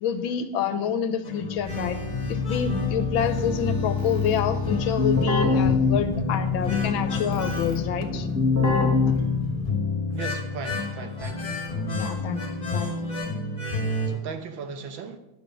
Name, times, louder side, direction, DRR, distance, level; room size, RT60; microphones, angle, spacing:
voice 1, 0.0-2.0 2.3-8.3 9.1-9.2 11.9-12.9, left 8 dB, 80° left, 10 dB, 1.6 m, -28 dB
sound 1, 1.2-14.1, left 3 dB, 20° left, 2.1 m, -30 dB
Keyboard (musical), 1.6-9.9, left 4 dB, 10° right, 1.0 m, -26 dB
voice 2, 10.1-11.6 14.1-15.2, right 5 dB, 75° right, 8 dB, 1.7 m, -37 dB
10.5 x 7.0 x 6.1 m, 0.91 s
omnidirectional pair, 2.2 m